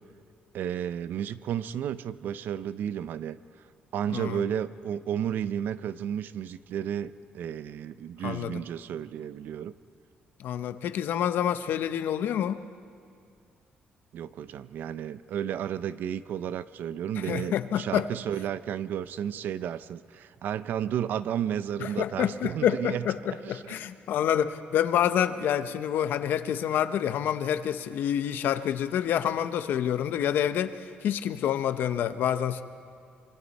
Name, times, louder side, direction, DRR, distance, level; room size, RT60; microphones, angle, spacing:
voice 1, 0.5-3.4 3.9-9.7 14.1-23.0 23.4-23.8, right 9 dB, 65° right, 15 dB, 0.5 m, -32 dB
voice 2, 4.1-4.4 8.2-8.6 10.4-12.6 17.2-18.1 21.8-32.6, left 10 dB, 70° left, 11 dB, 0.8 m, -28 dB
26.0 x 24.5 x 4.2 m, 2.3 s
cardioid pair, 175°, 4 cm